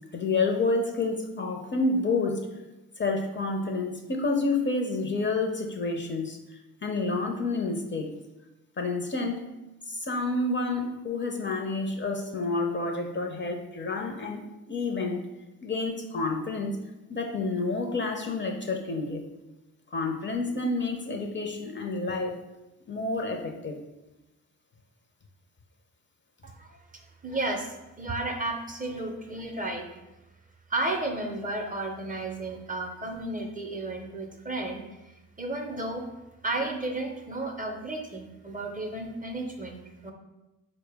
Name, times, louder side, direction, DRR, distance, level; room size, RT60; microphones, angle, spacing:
voice 1, 0.1-2.5 3.0-8.1 8.8-9.4 9.9-15.2 15.6-16.8 17.1-19.2 19.9-22.4 22.9-23.8, left 3 dB, 30° left, 2 dB, 0.5 m, -29 dB
voice 2, 26.4-26.8 27.2-29.9 30.7-34.8 35.4-36.1 36.4-40.1, right 2 dB, 20° right, 3 dB, 0.5 m, -33 dB
4.2 x 2.0 x 3.3 m, 1.0 s
supercardioid pair, 50°, 38 cm